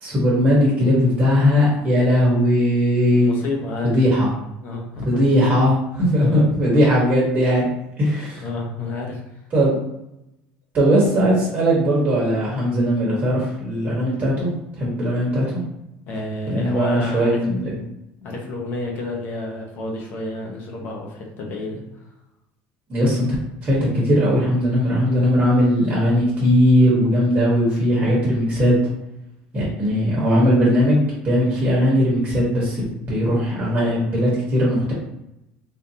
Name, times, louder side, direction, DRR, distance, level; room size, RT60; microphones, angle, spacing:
voice 1, 0.0-3.3 3.8-4.3 5.0-7.7 8.0-8.4 9.5-9.7 10.7-14.5 14.8-15.6 16.5-17.7 22.9-23.3 23.6-28.8 29.5-34.9, equal, 30° right, -5 dB, 1.1 m, -19 dB
voice 2, 3.2-4.0 4.6-5.2 6.2-6.4 8.4-9.2 16.1-17.4 18.2-21.8, left 2 dB, 55° left, 0 dB, 0.9 m, -30 dB
3.7 x 2.6 x 2.8 m, 0.85 s
cardioid pair, 145°, 4 cm